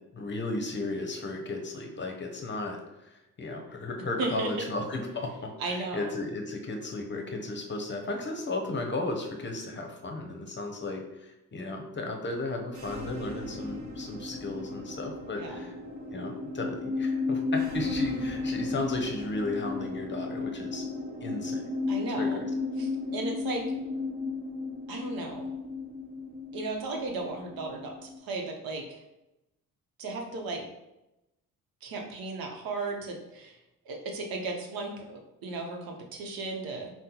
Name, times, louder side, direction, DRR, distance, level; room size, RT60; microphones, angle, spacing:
voice 1, 0.1-15.7 16.1-20.9 21.2-21.6 22.2-22.5, left 2 dB, 30° left, 3 dB, 0.7 m, -35 dB
voice 2, 4.0-4.7 5.6-6.1 15.4-15.7 21.9-22.4 22.8-23.7 24.9-25.5 26.5-29.0 30.0-30.6 31.8-33.6 33.9-36.9, right 3 dB, 80° right, 1 dB, 0.8 m, -35 dB
sound 1, 12.6-28.1, left 3 dB, 55° right, 1.0 m, -34 dB
5.3 x 2.1 x 2.9 m, 0.94 s
cardioid pair, 80°, 35 cm